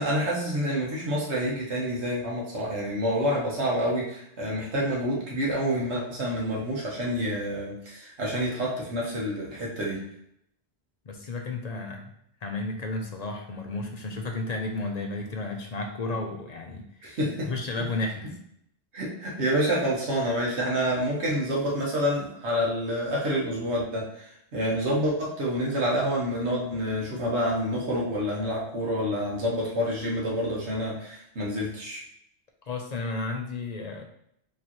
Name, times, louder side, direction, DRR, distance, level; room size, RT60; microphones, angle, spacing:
voice 1, 0.0-10.0 17.0-17.5 18.9-32.0, equal, 75° right, -4 dB, 1.3 m, -28 dB
voice 2, 11.1-12.1 12.4-17.2 17.5-18.3 32.7-34.1, left 2 dB, 45° left, 2 dB, 0.6 m, -33 dB
4.8 x 3.1 x 2.9 m, 0.73 s
omnidirectional pair, 1.2 m